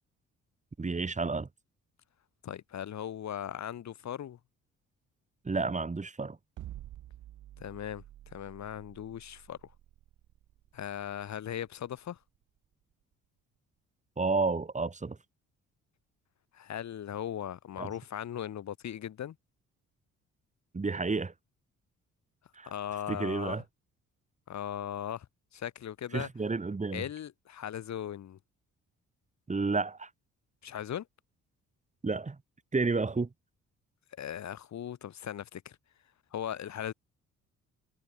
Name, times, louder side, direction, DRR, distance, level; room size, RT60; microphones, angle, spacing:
voice 1, 0.8-1.5 5.4-6.4 14.2-15.2 17.8-17.9 20.7-21.3 22.6-22.7 23.1-23.6 26.1-27.0 29.5-30.1 32.0-32.4 32.7-33.3, right 3 dB, 25° right, 3.2 m, -31 dB
voice 2, 2.4-4.4 7.6-9.7 10.7-12.2 16.5-19.4 22.6-23.6 24.5-25.3 25.5-26.3 26.9-28.4 30.6-31.1 34.2-35.8 36.3-36.9, left 10 dB, 65° left, 6.0 m, -38 dB
sound 1, 6.6-12.7, right 13 dB, 80° right, 3.9 m, -50 dB
cardioid pair, 90°, 30 cm